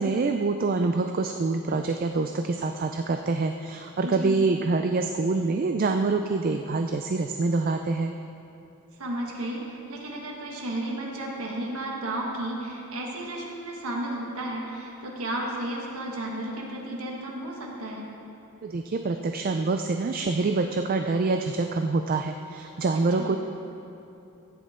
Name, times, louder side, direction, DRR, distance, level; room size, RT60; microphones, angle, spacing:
voice 1, 0.0-8.1 18.6-23.4, right 3 dB, 40° right, 6 dB, 0.4 m, -26 dB
voice 2, 4.0-4.4 9.0-18.1 22.9-23.4, right 1 dB, 70° right, -1 dB, 1.6 m, -33 dB
14.5 x 9.5 x 3.7 m, 2.8 s
head